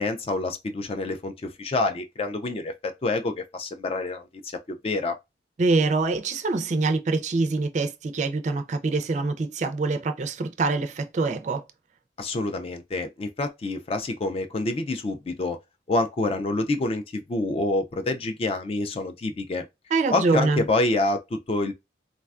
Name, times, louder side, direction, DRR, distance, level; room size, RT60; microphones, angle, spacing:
voice 1, 0.0-5.2 12.2-15.6 15.9-19.6 20.1-21.7, left 2 dB, 30° left, 0.3 m, -27 dB
voice 2, 5.6-11.6 19.9-20.6, right 3 dB, 40° right, 0.4 m, -25 dB
3.2 x 2.2 x 2.4 m
head